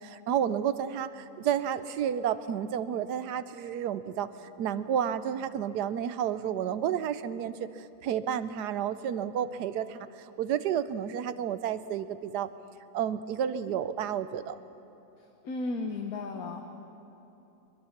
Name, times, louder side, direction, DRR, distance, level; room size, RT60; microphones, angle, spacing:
voice 1, 0.0-12.5 12.9-14.6, right 9 dB, 75° right, 13 dB, 1.2 m, -31 dB
voice 2, 15.4-16.6, left 3 dB, 60° left, 3 dB, 1.5 m, -34 dB
23.0 x 22.0 x 5.9 m, 2.9 s
omnidirectional pair, 1.8 m